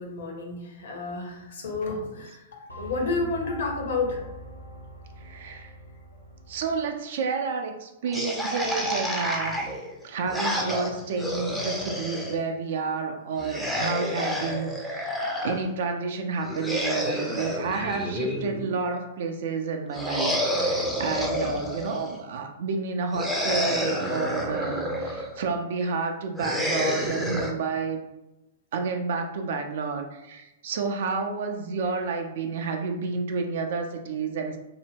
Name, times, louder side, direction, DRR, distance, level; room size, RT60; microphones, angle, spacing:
voice 1, 0.0-2.4 2.8-4.2, left 3 dB, 55° left, 0 dB, 0.7 m, -30 dB
sound 1, 2.7-6.9, equal, 85° left, 0.5 m, -43 dB
voice 2, 5.2-5.7 6.5-9.6 10.0-28.0 28.7-34.6, right 4 dB, 55° right, 5 dB, 0.4 m, -30 dB
sound 2, 8.1-12.4 13.4-15.6 16.4-18.8 19.9-22.2 23.1-25.3 26.4-27.5, equal, 5° left, 0.5 m, -29 dB
2.7 x 2.1 x 3.4 m, 0.95 s
figure-of-eight pair, 105°, 0 cm